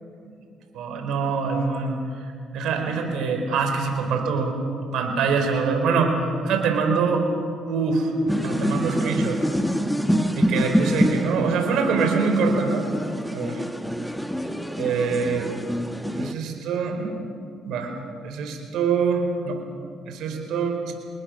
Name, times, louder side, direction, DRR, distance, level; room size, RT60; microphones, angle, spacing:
voice 1, 0.7-2.0 2.5-4.6 4.9-6.1 6.4-7.2 7.7-8.1 8.4-9.4 10.3-12.9 13.3-13.6 14.8-15.5 16.1-17.1 17.6-17.9 18.2-19.6 20.1-20.9, right 5 dB, 80° right, 4 dB, 4.6 m, -24 dB
sound 1, 8.3-16.3, equal, ahead, 1.6 m, -26 dB
28.5 x 20.0 x 6.6 m, 2.5 s
supercardioid pair, 80°, 0 cm